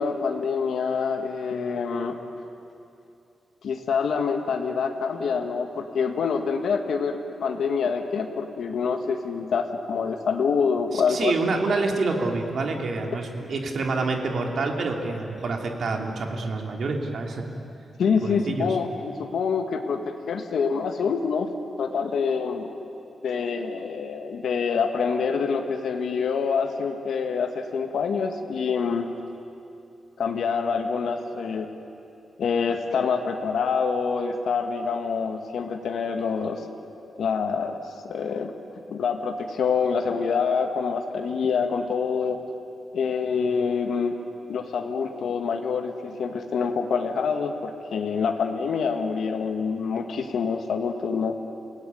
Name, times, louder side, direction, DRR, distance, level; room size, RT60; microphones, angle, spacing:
voice 1, 0.0-2.2 3.6-11.3 18.0-21.5 21.8-22.7 23.2-29.1 30.2-31.7 32.4-36.7 37.2-38.5 38.9-42.4 42.9-44.2 44.5-51.3, left 5 dB, 75° left, 4 dB, 1.6 m, -26 dB
voice 2, 10.9-17.4 18.2-18.7, right 3 dB, 55° right, 2 dB, 2.8 m, -27 dB
29.0 x 18.0 x 9.4 m, 2.7 s
wide cardioid pair, 160°, 0 cm